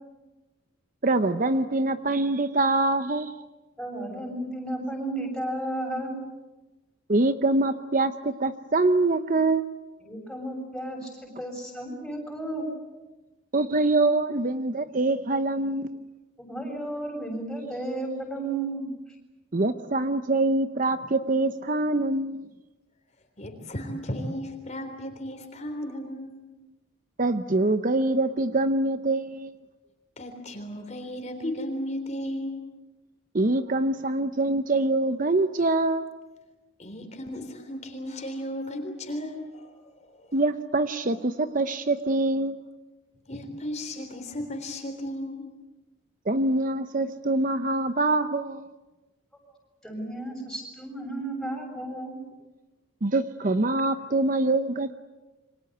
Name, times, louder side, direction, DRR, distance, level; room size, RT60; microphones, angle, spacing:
voice 1, 1.0-3.3 7.1-9.6 13.5-16.0 19.5-22.4 27.2-29.5 33.3-36.1 40.3-42.6 46.3-48.7 53.0-54.9, right 2 dB, 40° right, 10 dB, 0.8 m, -24 dB
voice 2, 3.8-6.1 10.0-12.7 16.5-18.9 49.8-52.2, right 1 dB, ahead, 1 dB, 7.4 m, -33 dB
voice 3, 23.4-26.4 30.2-32.6 36.8-40.4 43.3-45.4, left 1 dB, 35° left, 5 dB, 3.6 m, -35 dB
28.0 x 24.5 x 7.9 m, 1.1 s
head